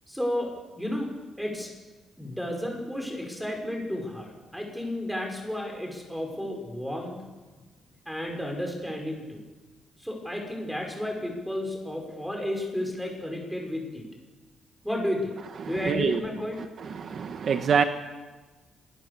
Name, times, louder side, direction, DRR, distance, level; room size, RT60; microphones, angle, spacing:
voice 1, 0.1-0.5 0.8-1.1 1.4-1.7 2.2-7.2 8.1-9.4 10.0-14.0 14.8-15.3 15.6-16.6, left 1 dB, ahead, 2 dB, 5.6 m, -32 dB
voice 2, 15.9-16.2 16.8-17.8, right 6 dB, 50° right, 7 dB, 1.1 m, -25 dB
26.5 x 20.0 x 6.9 m, 1.3 s
cardioid pair, 145°, 0 cm